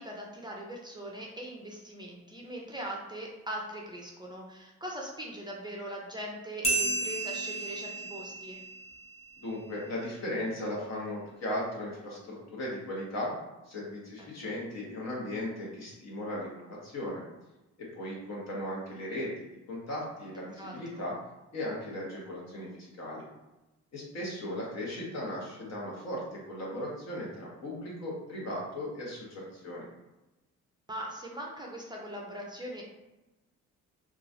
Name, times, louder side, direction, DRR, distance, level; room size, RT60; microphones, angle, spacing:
voice 1, 0.0-8.6 14.2-14.5 20.6-21.0 30.9-32.8, right 1 dB, 15° right, -2 dB, 0.5 m, -41 dB
sound 1, 6.6-9.7, right 2 dB, 20° left, 1.2 m, -33 dB
voice 2, 9.4-13.3 13.6-17.2 17.8-21.1 21.5-23.2 23.9-29.9, left 1 dB, 60° left, -4 dB, 1.1 m, -37 dB
3.0 x 2.4 x 2.5 m, 1.0 s
cardioid pair, 90°, 30 cm